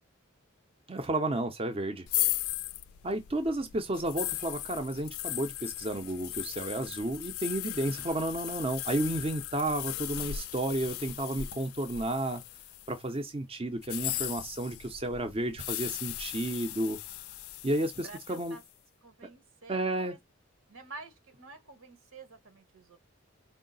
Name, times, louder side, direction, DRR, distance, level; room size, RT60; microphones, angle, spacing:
voice 1, 0.9-2.1 3.0-12.4 12.9-17.0 17.6-18.6 19.7-20.1, right 1 dB, 25° right, 0.5 m, -32 dB
sound 1, 2.1-13.0 13.8-18.6, left 15 dB, 90° left, 0.4 m, -37 dB
voice 2, 18.0-18.6 19.0-20.2 20.7-23.0, right 3 dB, 85° right, 1.2 m, -49 dB
4.6 x 2.1 x 3.8 m
head